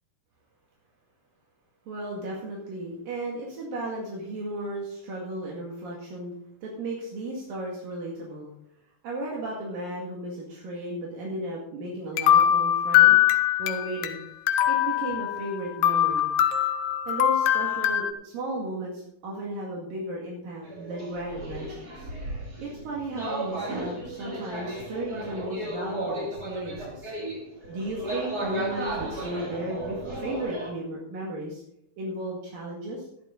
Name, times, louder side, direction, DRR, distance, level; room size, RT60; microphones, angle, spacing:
voice 1, 1.9-8.5 9.0-13.2 13.6-14.2 14.7-16.3 17.1-22.1 22.6-27.1 27.7-31.6 32.0-33.1, right 1 dB, 75° right, -3 dB, 3.8 m, -34 dB
sound 1, 12.2-14.1 14.5-15.5 15.8-18.1, left 11 dB, 75° left, 2.2 m, -22 dB
walking centro comercial caxinas, 20.6-30.7, right 1 dB, 30° right, 2.8 m, -35 dB
12.5 x 12.0 x 3.9 m, 0.76 s
omnidirectional pair, 4.0 m